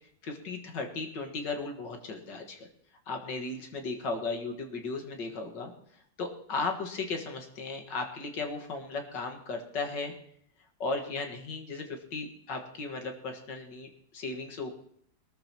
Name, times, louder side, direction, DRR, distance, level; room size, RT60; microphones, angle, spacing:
voice 1, 0.2-2.7 3.1-5.7 6.2-10.1 10.8-13.9 14.1-14.7, left 3 dB, 80° left, 3 dB, 2.3 m, -36 dB
21.5 x 13.5 x 3.0 m, 0.67 s
omnidirectional pair, 1.9 m